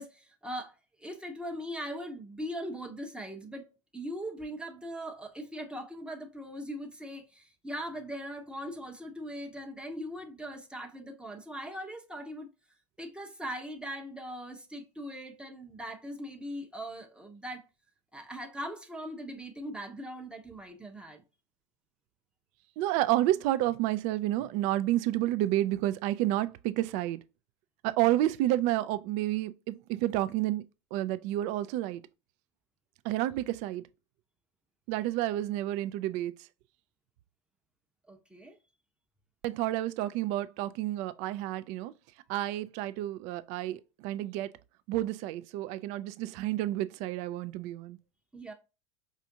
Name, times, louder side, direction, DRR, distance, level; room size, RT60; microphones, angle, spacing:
voice 1, 0.0-12.5 13.0-17.6 18.1-21.2 38.1-38.6 48.3-48.5, equal, 5° right, 0.7 m, -40 dB
voice 2, 22.8-27.2 27.8-30.6 30.9-32.0 33.0-33.8 34.9-36.3 39.4-41.9 42.3-44.5 44.9-48.0, right 14 dB, 50° right, 0.4 m, -30 dB
4.9 x 2.4 x 2.7 m
hypercardioid pair, 90°, 16 cm